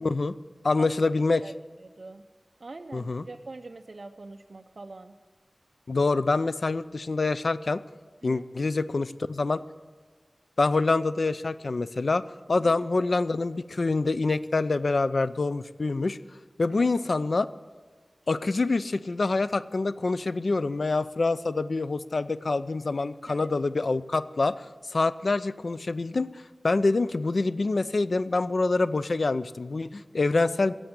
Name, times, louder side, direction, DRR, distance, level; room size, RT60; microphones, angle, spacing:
voice 1, 0.0-0.4 0.6-1.4 2.9-3.2 5.9-7.8 8.2-9.6 10.6-12.2 12.5-16.2 16.6-17.5 18.3-30.7, left 3 dB, 65° left, 14 dB, 0.5 m, -26 dB
voice 2, 1.8-2.2 2.6-5.2 8.2-8.5 12.6-12.7 16.7-16.9 23.3-23.5, right 3 dB, 60° right, 5 dB, 0.6 m, -43 dB
15.0 x 7.9 x 8.7 m, 1.4 s
wide cardioid pair, 75°, 0 cm